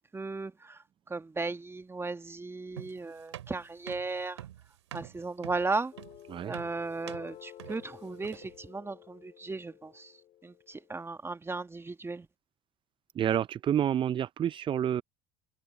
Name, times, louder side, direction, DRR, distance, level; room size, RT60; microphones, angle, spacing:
voice 1, 0.1-0.5 1.1-4.4 4.9-5.9 6.5-10.1 10.4-12.3, right 3 dB, 15° right, 1.9 m, -36 dB
sound 1, 2.8-8.6, right 12 dB, 90° right, 3.4 m, -46 dB
sound 2, 5.9-11.0, left 11 dB, 50° left, 5.5 m, -52 dB
voice 2, 13.2-15.0, right 10 dB, 35° right, 0.5 m, -28 dB
hypercardioid pair, 75°, 14 cm